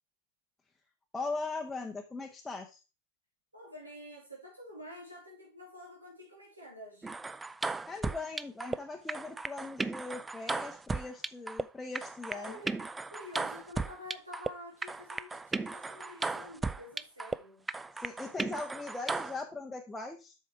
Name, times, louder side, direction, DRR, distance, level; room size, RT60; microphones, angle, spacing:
voice 1, 1.1-2.8 7.9-12.6 18.0-20.4, left 3 dB, 10° left, 0.9 m, -40 dB
voice 2, 3.5-7.1 12.3-17.7 19.0-19.4, left 1 dB, 85° right, 3.4 m, -49 dB
sound 1, 7.0-8.8 9.1-11.6 11.9-14.5 14.8-17.4 17.7-19.4, right 3 dB, 10° right, 0.3 m, -35 dB
7.8 x 5.7 x 4.7 m
figure-of-eight pair, 90°, 0 cm